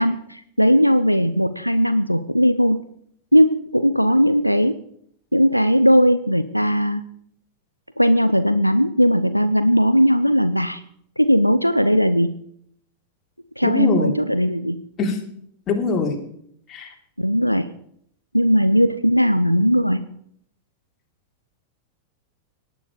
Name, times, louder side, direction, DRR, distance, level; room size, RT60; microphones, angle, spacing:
voice 1, 0.0-2.8 3.3-4.8 5.3-7.0 8.0-10.8 11.2-12.3 13.6-14.8 17.2-17.7 18.3-20.0, equal, 90° left, 11 dB, 0.6 m, -18 dB
voice 2, 13.6-14.1 15.0-15.2 15.7-16.2 16.7-16.9, left 4 dB, 30° left, 1 dB, 3.3 m, -22 dB
18.0 x 9.3 x 5.0 m, 0.70 s
figure-of-eight pair, 90°, 0 cm